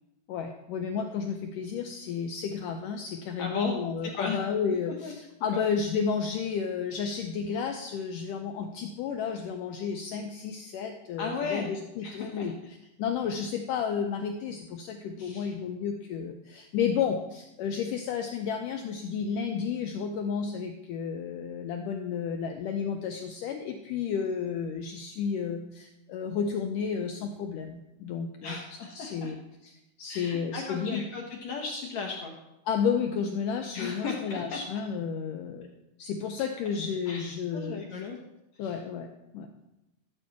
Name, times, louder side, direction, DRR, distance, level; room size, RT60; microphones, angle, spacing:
voice 1, 0.3-12.5 13.0-28.6 28.9-29.4 30.0-31.0 32.7-35.7 36.0-37.8 38.6-39.1 39.3-39.5, left 6 dB, 90° left, 4 dB, 1.9 m, -32 dB
voice 2, 3.4-3.8 4.0-4.4 5.0-5.1 5.5-5.7 11.2-11.7 12.0-12.7 15.2-15.5 28.4-29.3 30.1-32.3 33.7-34.6 37.1-37.2 37.5-38.2 38.5-38.8, left 5 dB, 70° left, 1 dB, 1.7 m, -35 dB
13.5 x 5.5 x 7.1 m, 0.91 s
omnidirectional pair, 4.6 m